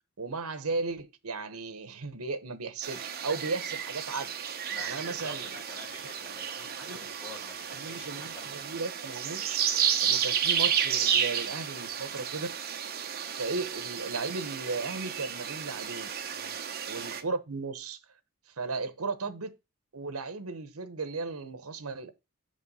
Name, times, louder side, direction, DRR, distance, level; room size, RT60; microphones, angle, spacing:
voice 1, 0.2-4.3 4.8-5.5 6.9-7.0 7.7-9.6 10.0-12.5 13.3-16.1 16.9-18.0 18.6-19.5 19.9-22.1, right 3 dB, 80° right, 1.0 m, -35 dB
sound 1, 2.8-17.2, right 8 dB, 45° right, 0.9 m, -32 dB
voice 2, 4.7-8.5 10.0-10.2 16.3-16.5, left 2 dB, 20° left, 4.2 m, -48 dB
6.1 x 5.3 x 5.5 m
head